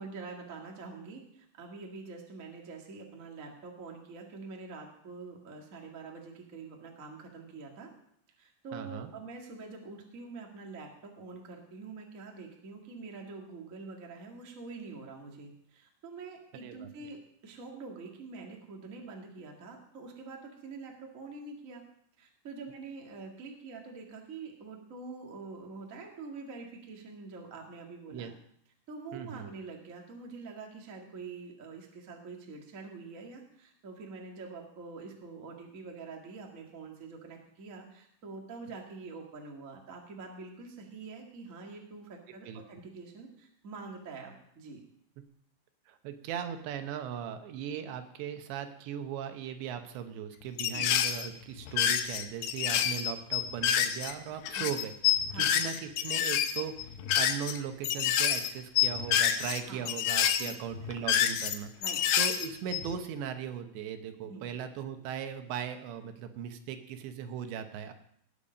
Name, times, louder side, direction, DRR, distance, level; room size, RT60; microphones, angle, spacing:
voice 1, 0.0-7.9 8.4-21.8 22.2-28.3 28.9-44.8 50.7-50.9 52.8-52.9 54.5-54.6 55.3-55.5 59.7-59.8 60.4-60.5 61.8-62.0 64.2-64.5, right 4 dB, 45° right, 0 dB, 1.0 m, -45 dB
voice 2, 8.7-9.1 16.6-16.9 28.1-28.3 29.1-29.5 42.5-42.6 45.9-54.9 55.2-56.7 57.2-61.7 62.2-67.9, right 8 dB, 80° right, 7 dB, 3.2 m, -38 dB
sound 1, 50.6-51.3 51.6-54.2 54.5-57.6 57.8-58.5 58.8-59.6 59.9-61.5 61.8-63.0, left 10 dB, 75° left, 2.8 m, -28 dB
18.5 x 7.1 x 5.2 m, 0.71 s
omnidirectional pair, 5.1 m